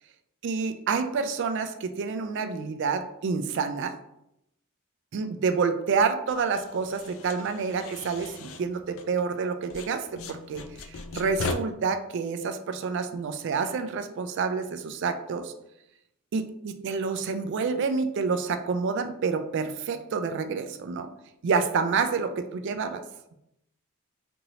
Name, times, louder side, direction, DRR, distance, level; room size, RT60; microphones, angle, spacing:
voice 1, 0.4-3.9 5.1-10.6 10.9-15.5 16.3-21.1 21.4-23.0, right 5 dB, 55° right, 8 dB, 0.3 m, -28 dB
sound 1, 6.3-9.4 9.7-11.5, left 3 dB, 65° left, 0.3 m, -38 dB
3.0 x 2.6 x 2.7 m, 0.81 s
head